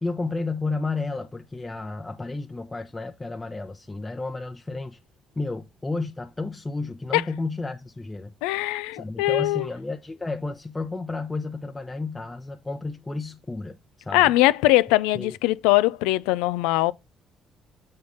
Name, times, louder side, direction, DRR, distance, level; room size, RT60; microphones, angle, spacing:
voice 1, 0.0-5.0 5.4-8.3 8.9-13.8 14.0-14.3 15.1-15.3, left 3 dB, 20° left, 0.8 m, -32 dB
voice 2, 8.4-9.7 14.1-16.9, left 17 dB, 90° left, 0.3 m, -21 dB
7.8 x 3.5 x 5.4 m
supercardioid pair, 60°, 0 cm